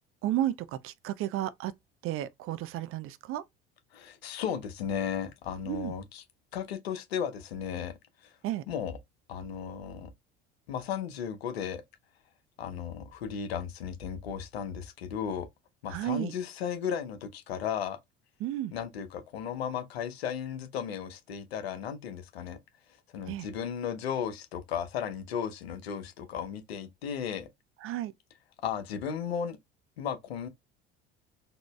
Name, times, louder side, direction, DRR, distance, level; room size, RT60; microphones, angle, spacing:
voice 1, 0.2-1.7 2.0-3.4 5.7-5.9 8.4-8.6 15.9-16.3 18.4-18.7 23.3-23.5 27.8-28.1, right 13 dB, 45° right, 0.6 m, -32 dB
voice 2, 3.9-6.2 6.5-7.9 8.7-9.0 9.3-10.1 10.7-11.8 12.6-15.5 15.8-18.0 18.7-22.6 23.1-27.5 28.6-29.6 30.0-30.5, left 8 dB, 75° left, 0.9 m, -35 dB
4.1 x 3.0 x 2.3 m
figure-of-eight pair, 65°, 31 cm